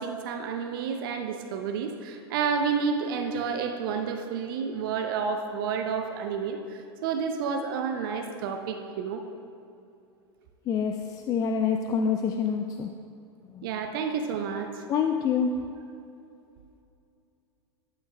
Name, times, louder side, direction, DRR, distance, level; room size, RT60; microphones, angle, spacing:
voice 1, 0.0-9.2 13.6-14.8, right 6 dB, 50° right, 6 dB, 0.6 m, -30 dB
voice 2, 10.7-12.9 13.5-13.7 14.9-15.5, left 6 dB, 25° left, 4 dB, 0.4 m, -26 dB
11.5 x 9.0 x 2.3 m, 2.6 s
figure-of-eight pair, 90°, 15 cm